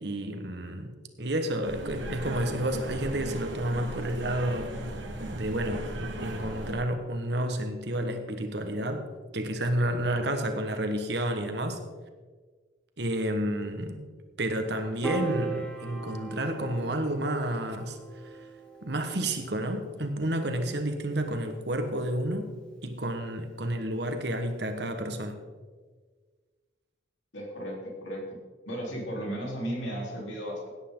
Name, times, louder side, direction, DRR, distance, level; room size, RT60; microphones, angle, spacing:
voice 1, 0.0-4.7 5.3-9.1 9.3-11.8 13.0-14.0 14.4-18.0 18.8-22.5 22.8-25.4, right 1 dB, 60° right, 6 dB, 1.4 m, -30 dB
sound 1, 1.6-6.7, right 1 dB, 75° right, 1.6 m, -37 dB
Piano, 15.0-21.4, right 3 dB, 5° left, 1.3 m, -39 dB
voice 2, 27.3-28.2 28.7-30.7, equal, 80° left, -2 dB, 4.0 m, -35 dB
17.5 x 9.7 x 3.9 m, 1.5 s
head